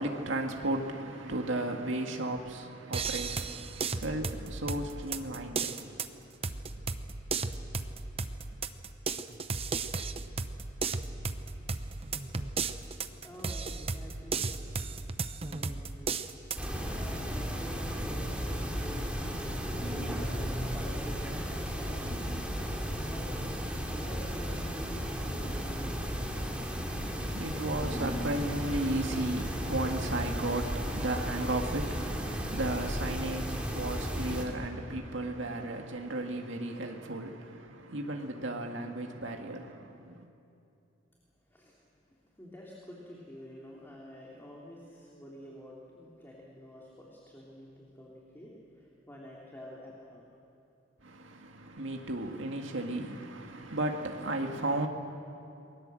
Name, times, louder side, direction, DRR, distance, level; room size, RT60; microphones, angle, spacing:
voice 1, 0.0-6.0 26.9-40.3 51.0-54.9, right 1 dB, 75° right, 2.0 m, -35 dB
sound 1, 2.9-16.7, right 4 dB, 30° right, 0.9 m, -35 dB
voice 2, 11.3-12.0 13.2-14.7 15.4-16.3 16.8-22.2 23.0-23.3 23.9-26.0 41.5-41.8 42.4-50.3, equal, 10° left, 3.0 m, -48 dB
sound 2, 16.6-34.5, equal, 5° right, 2.9 m, -34 dB
28.5 x 21.0 x 7.7 m
head